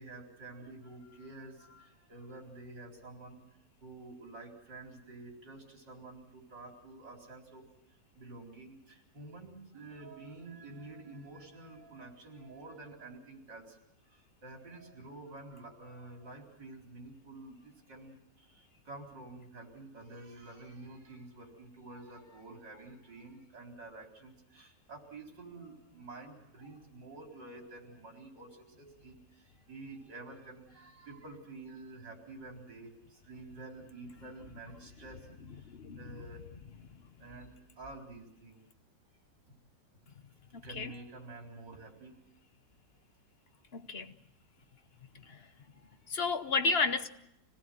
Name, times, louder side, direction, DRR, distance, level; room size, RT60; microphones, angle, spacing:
voice 1, 0.0-3.4 3.8-7.6 8.1-13.8 14.1-36.4 37.2-38.6 40.5-42.2 45.1-45.4 45.7-45.9, right 2 dB, 75° right, 4.8 m, -49 dB
voice 2, 35.7-36.0 40.5-40.9 43.7-44.1 45.3-45.4 46.1-47.1, left 4 dB, 40° left, 1.0 m, -32 dB
25.5 x 18.5 x 7.6 m
omnidirectional pair, 1.9 m